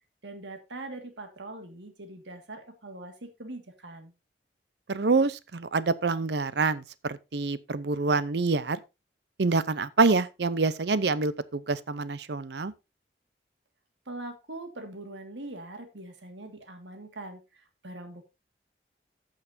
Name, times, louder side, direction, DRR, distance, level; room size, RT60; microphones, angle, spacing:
voice 1, 0.2-4.1 14.1-18.3, right 2 dB, 85° right, 1.9 m, -42 dB
voice 2, 4.9-8.8 9.4-12.7, right 4 dB, 70° right, 0.6 m, -26 dB
14.5 x 6.5 x 2.7 m
head